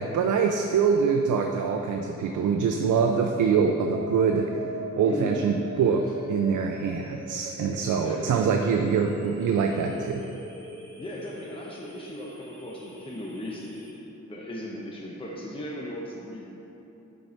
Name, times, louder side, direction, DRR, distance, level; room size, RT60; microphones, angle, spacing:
voice 1, 0.0-4.5 4.9-10.3, right 6 dB, 80° right, 4 dB, 0.6 m, -24 dB
sound 1, 3.9-13.9, right 1 dB, 15° right, 1.6 m, -42 dB
voice 2, 5.0-5.5 8.0-8.5 11.0-13.9 14.3-16.5, left 1 dB, 15° left, -3 dB, 1.0 m, -37 dB
9.3 x 4.6 x 5.6 m, 3.0 s
cardioid pair, 90°, 30 cm